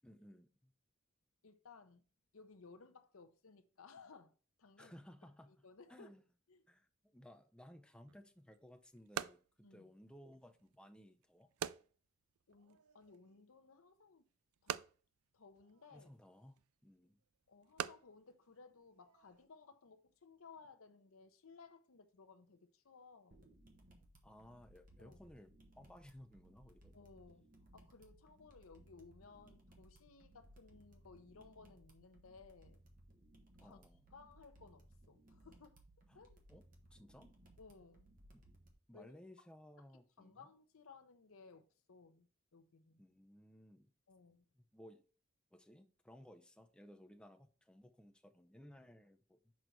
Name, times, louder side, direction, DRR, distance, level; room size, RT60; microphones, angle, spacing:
voice 1, 0.0-0.7 4.8-6.2 6.7-11.5 15.9-17.2 24.2-27.0 33.6-34.1 36.1-36.2 36.5-36.6 36.9-37.3 38.3-38.4 38.9-40.5 43.0-43.9 44.5-45.0 45.5-49.5, left 1 dB, 5° left, 0.5 m, -59 dB
voice 2, 1.4-2.0 2.3-4.3 4.6-5.0 5.5-6.1 6.5-6.6 9.6-9.9 12.5-14.3 14.6-14.8 15.3-16.1 17.5-23.4 25.0-25.2 26.9-32.8 33.6-33.8 34.1-35.8 36.1-36.4 37.6-38.1 38.9-39.5 39.8-39.9 40.2-43.0 44.1-44.4, left 4 dB, 75° left, 0.7 m, -60 dB
sound 1, 8.1-19.5, right 9 dB, 90° right, 0.3 m, -49 dB
sound 2, 23.3-38.7, right 1 dB, 40° right, 1.3 m, -64 dB
6.2 x 4.0 x 4.5 m
head